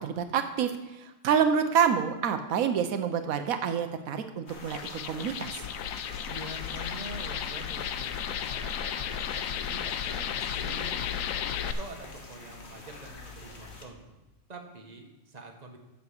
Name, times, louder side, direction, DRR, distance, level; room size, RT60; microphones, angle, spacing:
voice 1, 0.0-5.6, right 7 dB, 90° right, 8 dB, 1.2 m, -28 dB
sound 1, 4.5-13.9, left 3 dB, 55° left, 1.5 m, -46 dB
sound 2, 4.6-11.7, left 9 dB, 75° left, 1.0 m, -34 dB
voice 2, 6.3-11.1 11.6-14.2 14.5-15.8, right 2 dB, 30° right, 2 dB, 1.5 m, -45 dB
8.3 x 6.9 x 6.6 m, 1.0 s
omnidirectional pair, 1.4 m